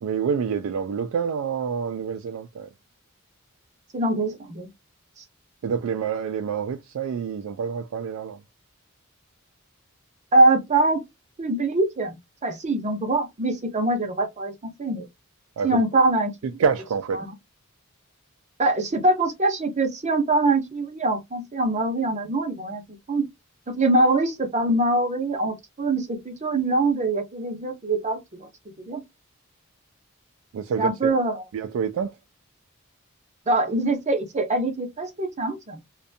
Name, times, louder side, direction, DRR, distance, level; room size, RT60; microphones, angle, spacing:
voice 1, 0.0-2.7 5.6-8.4 15.6-15.8 16.6-17.3 30.5-31.1 31.5-32.2, right 6 dB, 75° right, 0.3 m, -27 dB
voice 2, 3.9-4.7 5.2-5.3 10.3-11.0 11.4-12.2 12.4-15.1 15.6-16.3 17.2-17.3 18.6-22.8 23.1-23.3 23.7-28.5 28.8-29.0 30.8-31.4 33.5-35.8, right 2 dB, 35° right, 0.6 m, -23 dB
2.5 x 2.2 x 2.5 m
head